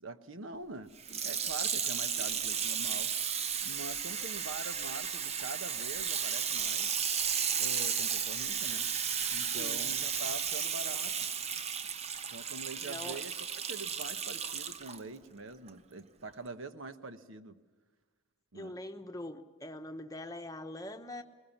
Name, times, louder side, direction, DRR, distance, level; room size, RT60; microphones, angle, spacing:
voice 1, 0.0-0.9 1.2-3.1 3.6-6.9 7.6-8.9 9.3-11.3 12.3-13.3 13.7-17.6 18.5-18.8, right 3 dB, 70° right, 9 dB, 1.1 m, -44 dB
Water tap faucet / Sink (filling or washing), 1.0-15.0 15.7-15.8, right 7 dB, 30° right, 0.7 m, -34 dB
voice 2, 9.5-9.9 12.8-13.2 18.5-21.2, left 1 dB, 15° left, 7 dB, 1.0 m, -43 dB
21.5 x 20.5 x 7.2 m, 1.3 s
head